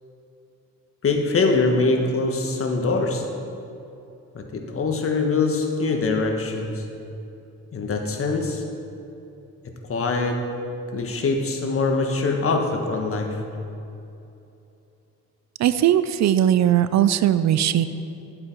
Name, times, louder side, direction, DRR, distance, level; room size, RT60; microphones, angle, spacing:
voice 1, 1.0-3.2 4.3-6.8 7.7-8.6 9.9-10.5 10.9-13.4, left 3 dB, 45° left, 3 dB, 1.5 m, -23 dB
voice 2, 15.6-17.9, right 11 dB, 65° right, 13 dB, 0.5 m, -19 dB
11.5 x 7.6 x 4.6 m, 2.8 s
cardioid pair, 90°, 30 cm